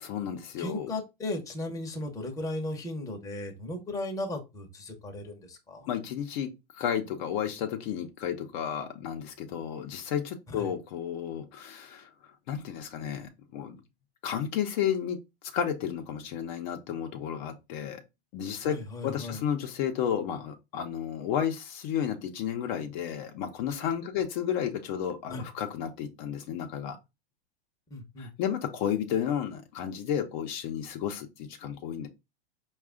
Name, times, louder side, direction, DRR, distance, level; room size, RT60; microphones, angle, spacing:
voice 1, 0.0-0.9 5.9-12.1 12.5-13.8 14.2-15.2 15.5-18.0 18.3-18.8 19.0-27.0 28.2-32.1, left 9 dB, 45° left, 0.7 m, -32 dB
voice 2, 0.6-5.9 10.5-10.7 18.7-19.4 25.3-25.4 27.9-28.3, left 1 dB, 10° left, 0.8 m, -36 dB
4.7 x 2.4 x 3.6 m
hypercardioid pair, 125°, 30 cm